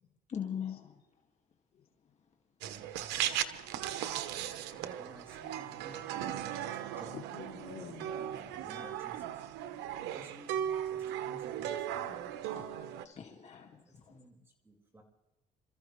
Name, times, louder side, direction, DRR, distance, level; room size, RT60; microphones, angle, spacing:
voice 1, 0.3-1.0 8.7-9.0 13.0-14.2, left 8 dB, 40° left, 2.1 m, -41 dB
sound 1, 2.6-13.0, right 10 dB, 90° right, 1.1 m, -37 dB
voice 2, 4.9-7.2 8.3-9.5 10.1-10.5 10.9-12.6 13.9-15.0, right 1 dB, 15° right, 4.9 m, -55 dB
voice 3, 7.1-8.3 9.7-10.1 12.1-12.2 13.5-13.8, left 7 dB, 65° left, 3.0 m, -50 dB
28.0 x 14.5 x 3.2 m
cardioid pair, 110°, 17 cm